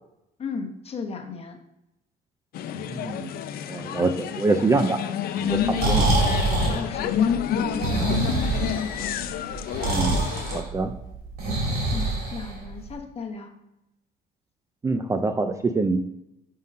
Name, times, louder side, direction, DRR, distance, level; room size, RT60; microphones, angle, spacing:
voice 1, 0.4-1.6 5.6-5.9 6.7-8.1 11.9-13.5, left 4 dB, 35° left, 5 dB, 0.9 m, -34 dB
sound 1, 2.5-10.6, left 9 dB, 65° left, 0.4 m, -29 dB
voice 2, 2.9-3.3 3.7-5.0 5.4-6.1 9.8-10.2 10.5-10.9 14.8-16.0, right 3 dB, 20° right, 7 dB, 0.3 m, -25 dB
Breathing, 5.5-12.9, right 2 dB, 65° right, 2.4 m, -25 dB
5.3 x 3.7 x 5.4 m, 0.89 s
cardioid pair, 110°, 17 cm